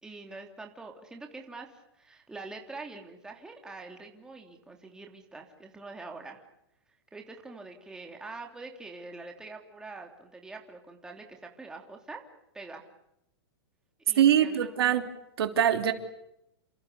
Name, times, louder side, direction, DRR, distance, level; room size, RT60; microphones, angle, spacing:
voice 1, 0.0-6.4 7.1-12.2 12.5-12.9 14.1-14.9, right 3 dB, 5° right, 2 dB, 3.1 m, -45 dB
voice 2, 14.2-15.1 15.4-15.9, right 10 dB, 70° right, 6 dB, 3.3 m, -23 dB
29.0 x 28.0 x 7.0 m, 0.81 s
hypercardioid pair, 155°, 14 cm